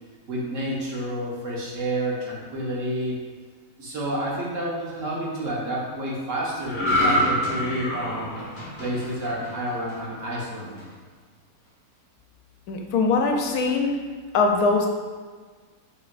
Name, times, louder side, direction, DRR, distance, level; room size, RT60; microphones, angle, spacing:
voice 1, 0.3-3.2 3.8-8.3 8.8-10.8, right 1 dB, 60° right, -4 dB, 1.2 m, -29 dB
sound 1, 6.7-10.1 10.6-10.8, equal, 40° left, 1.4 m, -26 dB
voice 2, 12.7-13.9 14.3-14.9, left 4 dB, 85° left, 3 dB, 1.1 m, -21 dB
6.0 x 3.1 x 2.4 m, 1.5 s
omnidirectional pair, 1.6 m